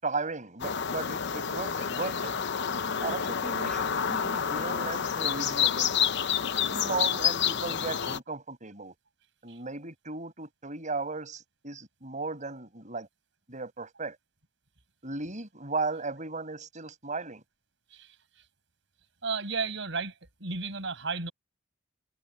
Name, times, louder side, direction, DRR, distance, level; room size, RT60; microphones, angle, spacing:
voice 1, 0.0-2.4 3.0-5.9 6.7-8.9 9.4-13.1 13.5-14.2 15.0-17.4, right 3 dB, 40° right, 6.8 m, -36 dB
sound 1, 0.6-8.2, left 8 dB, 60° left, 0.8 m, -29 dB
voice 2, 19.2-20.1 20.4-21.3, right 4 dB, 70° right, 6.3 m, -33 dB
head